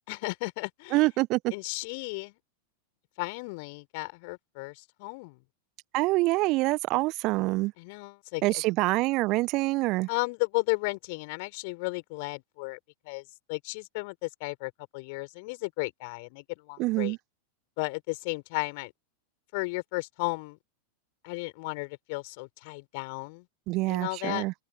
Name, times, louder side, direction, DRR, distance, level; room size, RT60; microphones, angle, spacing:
voice 1, 0.1-1.0 1.5-2.4 3.2-5.4 7.8-8.4 10.1-12.8 13.0-17.1 17.8-18.9 19.5-20.6 21.2-23.5 23.9-24.5, left 28 dB, 45° left, 4.8 m, -34 dB
voice 2, 0.9-1.5 5.9-7.7 8.4-10.1 16.8-17.2 23.7-24.5, right 21 dB, 40° right, 1.1 m, -26 dB
open air
figure-of-eight pair, 90°, 0 cm